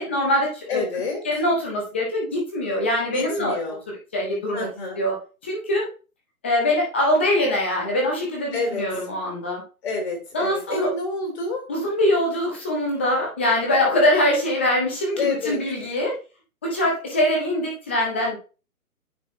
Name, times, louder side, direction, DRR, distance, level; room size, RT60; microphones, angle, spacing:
voice 1, 0.0-0.8 1.2-3.6 4.1-4.7 5.0-5.9 6.4-9.6 10.3-10.9 11.7-16.2 16.6-18.4, left 1 dB, 10° left, -1 dB, 0.5 m, -23 dB
voice 2, 0.7-1.2 3.1-3.8 4.5-5.0 8.5-9.1 9.8-11.7 15.2-15.6, left 3 dB, 45° left, 1 dB, 3.1 m, -28 dB
9.2 x 3.9 x 2.7 m, 0.34 s
figure-of-eight pair, 140°, 44 cm